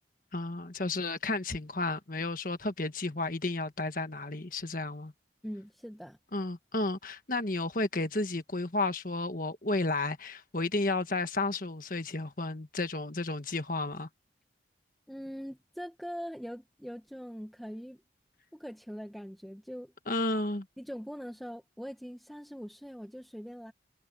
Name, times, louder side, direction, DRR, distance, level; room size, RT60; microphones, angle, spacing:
voice 1, 0.3-5.1 6.3-14.1 20.1-20.7, left 2 dB, 45° left, 1.6 m, -32 dB
voice 2, 5.4-6.2 15.1-18.0 18.5-19.9 20.8-23.7, equal, ahead, 1.3 m, -42 dB
head